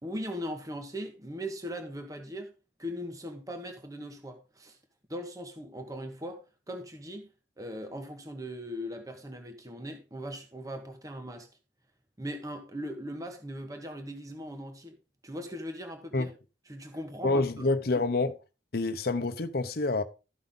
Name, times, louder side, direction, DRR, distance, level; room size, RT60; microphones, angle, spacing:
voice 1, 0.0-2.5 2.8-4.8 5.1-6.4 6.7-7.3 7.6-11.5 12.2-15.0 15.2-16.3 16.7-17.7, equal, 20° right, 1.2 m, -39 dB
voice 2, 17.2-18.4 18.7-20.0, left 3 dB, 55° left, 0.8 m, -27 dB
13.5 x 5.6 x 3.8 m
head